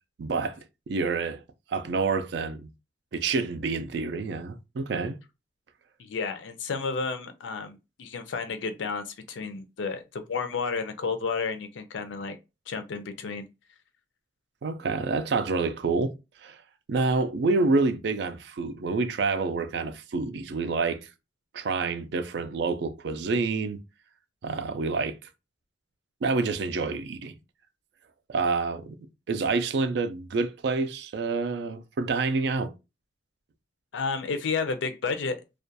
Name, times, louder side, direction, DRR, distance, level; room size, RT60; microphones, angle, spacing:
voice 1, 0.2-1.4 1.7-2.7 3.1-5.2 14.6-16.2 16.4-16.6 16.9-21.1 21.5-23.8 24.4-25.2 26.2-27.3 28.3-29.0 29.3-32.7, right 4 dB, 60° right, 0.3 m, -28 dB
voice 2, 6.0-12.4 12.7-13.4 33.9-35.4, left 4 dB, 80° left, 0.5 m, -31 dB
2.3 x 2.2 x 2.6 m
head